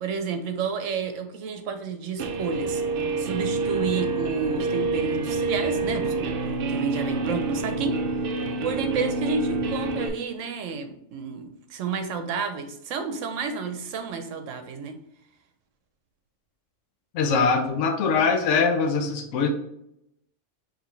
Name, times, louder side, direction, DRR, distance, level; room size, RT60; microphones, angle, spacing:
voice 1, 0.0-2.8 3.2-6.2 6.4-8.0 8.6-15.0, right 5 dB, 75° right, 7 dB, 1.1 m, -30 dB
Guitar, 2.2-10.1, right 3 dB, 60° right, 0.6 m, -27 dB
voice 2, 17.1-19.5, left 5 dB, 70° left, 5 dB, 1.0 m, -22 dB
5.0 x 3.2 x 3.1 m, 0.79 s
omnidirectional pair, 1.3 m